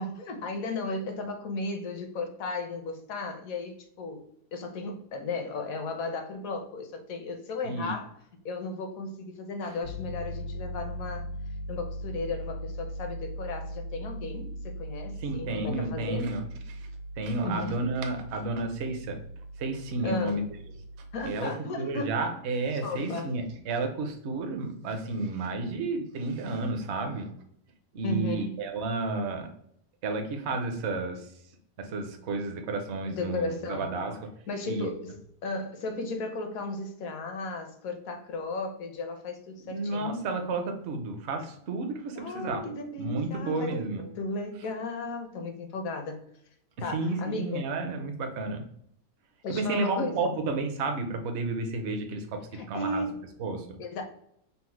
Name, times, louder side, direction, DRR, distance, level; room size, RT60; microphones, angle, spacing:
voice 1, 0.0-8.1 8.4-11.2 11.7-16.3 17.4-17.8 20.0-20.4 21.1-22.3 22.8-23.3 28.0-28.6 33.0-33.9 34.5-35.1 35.4-40.1 42.2-46.2 46.8-47.7 49.4-50.3 52.5-53.2 53.8-54.0, left 2 dB, 65° left, 5 dB, 1.0 m, -35 dB
voice 2, 7.6-7.9 9.6-9.7 15.2-16.9 17.2-19.2 19.6-20.4 21.2-21.5 21.8-27.3 27.9-29.5 30.0-31.3 31.8-34.2 34.7-34.9 39.6-42.6 43.0-44.0 46.9-48.6 49.6-53.1 53.4-53.7, right 3 dB, 55° right, 5 dB, 0.8 m, -31 dB
Piano, 9.8-21.2, equal, 80° left, 1.4 m, -39 dB
4.1 x 2.1 x 4.4 m, 0.70 s
omnidirectional pair, 1.8 m